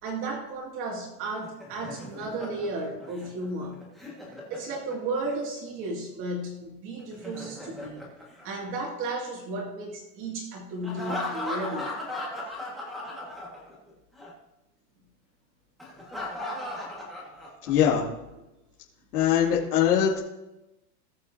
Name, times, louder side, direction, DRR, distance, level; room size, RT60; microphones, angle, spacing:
voice 1, 0.0-3.8 4.5-8.0 8.4-11.9, right 2 dB, 25° right, 0 dB, 2.5 m, -34 dB
Laughter, 1.2-5.3 7.0-9.1 10.8-13.9 14.2-14.3 15.8-17.9, left 1 dB, ahead, 1.9 m, -37 dB
voice 2, 17.7-18.1 19.1-20.2, left 9 dB, 65° left, -5 dB, 3.0 m, -22 dB
20.0 x 7.7 x 2.9 m, 0.93 s
supercardioid pair, 175°, 48 cm